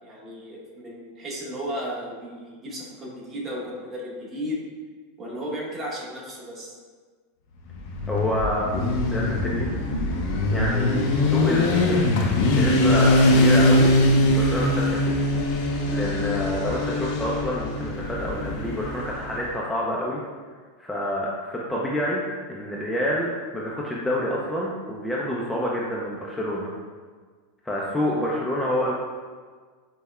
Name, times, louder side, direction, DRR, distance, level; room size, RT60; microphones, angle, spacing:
voice 1, 0.0-4.5 5.2-6.8, equal, 30° right, -4 dB, 1.0 m, -34 dB
Motorcycle, 7.7-19.4, left 1 dB, 65° left, 0.5 m, -22 dB
voice 2, 8.1-8.8 9.1-9.7 10.5-12.1 12.5-13.9 14.3-15.2 15.9-20.2 20.8-22.2 22.5-26.7 27.6-28.9, equal, 10° left, -4 dB, 0.4 m, -28 dB
5.3 x 2.1 x 2.2 m, 1.5 s
supercardioid pair, 120°, 0 cm